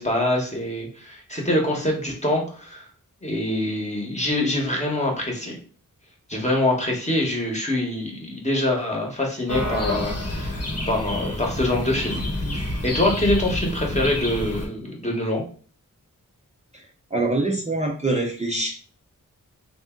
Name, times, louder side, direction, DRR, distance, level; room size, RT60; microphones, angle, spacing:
voice 1, 0.0-2.9 3.2-5.5 6.3-12.2 12.5-15.4, left 1 dB, 20° left, 0 dB, 1.1 m, -25 dB
sound 1, 9.5-14.7, left 1 dB, 50° left, 1.0 m, -28 dB
voice 2, 17.1-18.7, right 2 dB, 20° right, -2 dB, 0.6 m, -24 dB
3.3 x 2.6 x 3.6 m, 0.41 s
wide cardioid pair, 80°, 33 cm